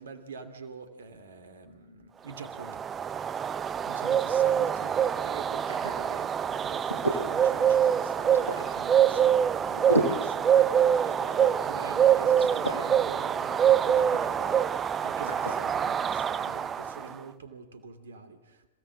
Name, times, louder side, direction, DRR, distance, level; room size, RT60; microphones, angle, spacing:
voice 1, 0.0-2.8 3.8-18.7, right 5 dB, 65° right, 9 dB, 2.8 m, -46 dB
sound 1, 2.4-17.0, right 9 dB, 25° right, 0.7 m, -25 dB
sound 2, 4.3-17.2, right 1 dB, 85° left, 5.4 m, -37 dB
27.0 x 17.0 x 7.5 m, 1.1 s
figure-of-eight pair, 90°, 0 cm